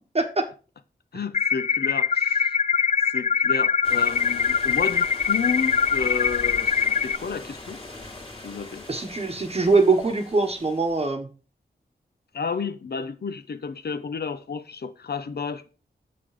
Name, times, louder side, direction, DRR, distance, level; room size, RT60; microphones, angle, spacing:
voice 1, 1.1-2.5 3.1-7.8 8.4-8.8 12.3-15.7, left 5 dB, 70° left, 0.9 m, -31 dB
sound 1, 1.3-7.2, left 6 dB, 45° left, 0.4 m, -23 dB
sound 2, 3.8-11.1, left 2 dB, 30° left, 2.2 m, -41 dB
voice 2, 8.9-11.3, right 3 dB, 35° right, 1.2 m, -22 dB
7.8 x 5.8 x 4.9 m
wide cardioid pair, 125°, 17 cm